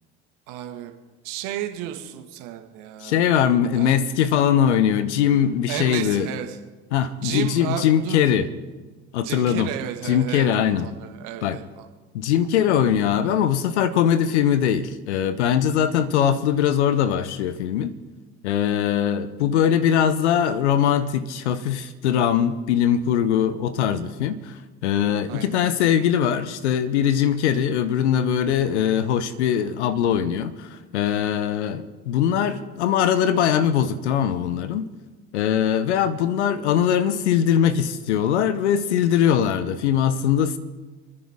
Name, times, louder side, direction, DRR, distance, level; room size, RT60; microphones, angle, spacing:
voice 1, 0.5-0.9 1.2-3.2 3.7-4.0 5.7-6.6 7.1-8.2 9.2-10.5 10.8-11.9 25.3-25.5, right 11 dB, 65° right, 1.9 m, -33 dB
voice 2, 3.0-6.3 6.9-8.5 9.1-9.7 10.0-10.9 11.4-11.6 12.1-17.9 18.4-34.9 35.3-40.6, left 9 dB, 75° left, 1.0 m, -21 dB
29.0 x 9.9 x 3.7 m
hypercardioid pair, 65°, 34 cm